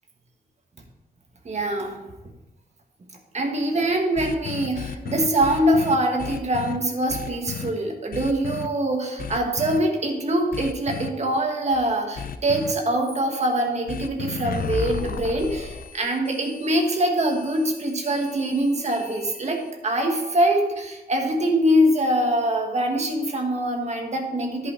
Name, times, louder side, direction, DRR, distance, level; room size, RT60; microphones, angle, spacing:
voice 1, 1.4-2.0 3.3-24.7, right 1 dB, 45° right, 1 dB, 1.4 m, -23 dB
sound 1, 4.2-6.8 7.1-7.7 8.1-8.7 9.2-9.8 10.5-11.1 12.2-12.7 13.9-19.7, left 6 dB, 65° left, 0.5 m, -34 dB
10.5 x 5.6 x 4.4 m, 1.0 s
wide cardioid pair, 175°, 16 cm